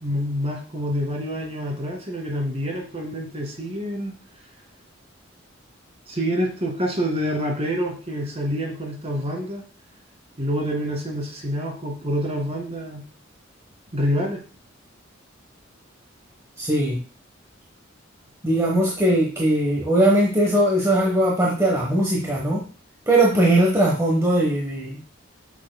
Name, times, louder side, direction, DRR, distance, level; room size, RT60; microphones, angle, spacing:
voice 1, 0.0-4.1 6.1-9.6 10.4-13.0 13.9-14.4, equal, 30° right, 1 dB, 2.1 m, -27 dB
voice 2, 16.6-17.0 18.4-22.6 23.1-25.0, right 1 dB, 15° right, -3 dB, 1.2 m, -20 dB
7.2 x 6.6 x 2.3 m, 0.37 s
head